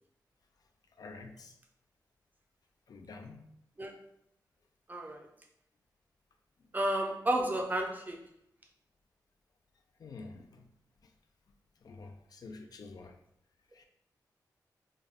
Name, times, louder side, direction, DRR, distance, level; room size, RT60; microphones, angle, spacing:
voice 1, 1.0-1.6 2.9-3.5 10.0-10.7 11.0-11.1 11.8-13.2 13.7-13.8, left 3 dB, 60° left, 5 dB, 0.4 m, -48 dB
voice 2, 4.9-5.3 6.7-8.2, right 1 dB, 25° right, 2 dB, 0.5 m, -31 dB
3.5 x 2.1 x 3.5 m, 0.74 s
wide cardioid pair, 100°, 7 cm